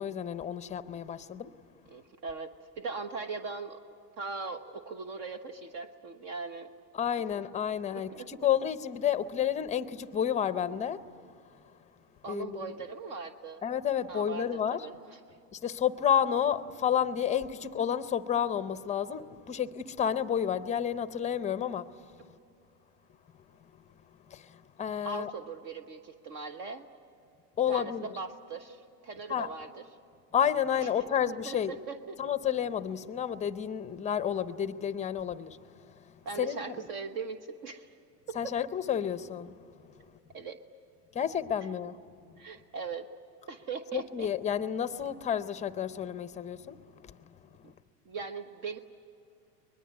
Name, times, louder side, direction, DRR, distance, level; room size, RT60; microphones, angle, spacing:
voice 1, 0.0-1.5 6.9-11.0 12.3-12.6 13.6-14.9 15.5-21.9 24.3-25.3 27.6-28.1 29.3-29.5 30.3-31.7 32.2-35.6 36.4-36.7 38.3-39.6 41.1-42.0 43.9-46.8 47.0-47.1 47.6-47.7, left 9 dB, 15° left, 0.5 m, -30 dB
voice 2, 1.9-2.5 2.8-3.8 4.2-6.7 7.9-8.3 12.2-13.6 14.1-15.2 25.0-26.9 27.7-29.8 30.8-31.1 31.4-32.2 36.2-37.9 38.3-38.5 40.3-40.6 42.4-43.1 43.5-44.3 47.6-47.7 48.0-48.8, right 4 dB, 55° right, 1.3 m, -40 dB
23.5 x 21.0 x 9.6 m
supercardioid pair, 120°, 48 cm